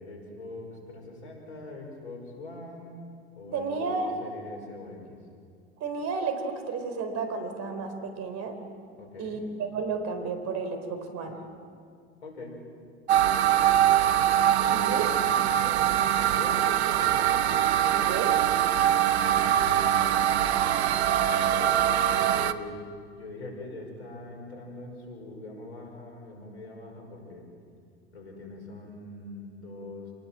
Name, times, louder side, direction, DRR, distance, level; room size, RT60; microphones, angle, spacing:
voice 1, 0.0-3.0 3.3-5.2 9.0-9.4 12.2-12.6 13.8-14.2 14.6-16.0 16.3-17.3 18.0-21.8 22.3-22.8 23.2-27.5 28.1-30.1, left 2 dB, 90° left, 2 dB, 5.7 m, -43 dB
voice 2, 3.5-4.1 5.8-8.6 9.2-11.4 14.7-15.1 18.1-18.3, right 4 dB, 55° right, 7 dB, 4.3 m, -32 dB
sound 1, 13.1-22.5, right 10 dB, 85° right, 0.9 m, -23 dB
28.5 x 19.0 x 7.6 m, 2.2 s
hypercardioid pair, 75°, 32 cm